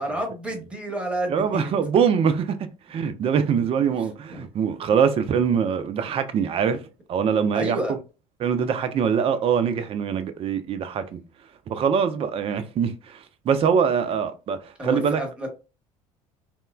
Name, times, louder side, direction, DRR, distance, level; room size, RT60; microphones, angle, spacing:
voice 1, 0.0-1.7 4.3-4.5 7.5-8.0 14.8-15.5, right 1 dB, 5° right, 0.9 m, -29 dB
voice 2, 1.3-2.6 2.9-6.8 7.1-7.8 8.4-11.2 11.7-15.2, right 7 dB, 30° right, 0.4 m, -23 dB
2.9 x 2.1 x 2.2 m
figure-of-eight pair, 60°, 18 cm